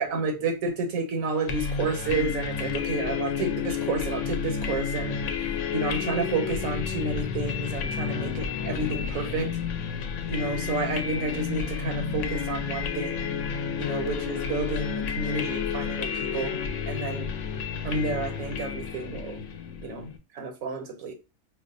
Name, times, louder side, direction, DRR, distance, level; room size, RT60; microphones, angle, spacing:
voice 1, 0.0-5.2 5.7-9.5 10.3-13.2 13.8-16.6 16.9-17.3 17.8-19.4 19.8-21.1, right 3 dB, 85° right, 1.1 m, -30 dB
sound 1, 1.5-20.2, left 6 dB, 70° left, 0.9 m, -31 dB
5.1 x 2.1 x 2.6 m
omnidirectional pair, 1.4 m